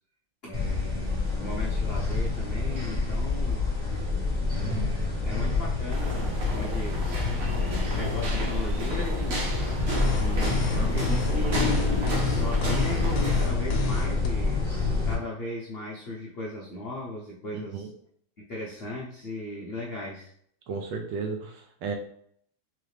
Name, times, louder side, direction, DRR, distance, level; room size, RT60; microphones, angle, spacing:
voice 1, 0.4-3.7 4.5-7.1 7.5-9.9 10.2-11.9 12.2-14.7 15.0-17.9 18.4-20.3, left 1 dB, 85° left, -4 dB, 0.5 m, -37 dB
sound 1, 0.5-15.1, left 3 dB, 20° right, 1.8 m, -28 dB
voice 2, 4.6-5.0 17.7-17.9 20.7-22.0, right 5 dB, 75° right, 3 dB, 1.2 m, -34 dB
sound 2, 5.9-13.5, right 1 dB, 90° right, 1.9 m, -34 dB
sound 3, 9.9-14.3, left 3 dB, 60° left, 1.1 m, -28 dB
3.6 x 3.3 x 3.2 m, 0.64 s
omnidirectional pair, 2.3 m